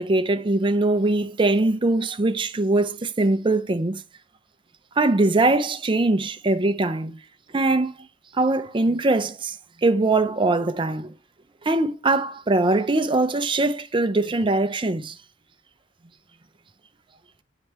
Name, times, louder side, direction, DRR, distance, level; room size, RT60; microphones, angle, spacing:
voice 1, 0.0-4.0 5.0-7.2 7.5-7.9 8.3-9.6 9.8-11.1 11.6-15.2, right 2 dB, 25° right, 0.6 m, -22 dB
9.2 x 5.2 x 3.0 m
head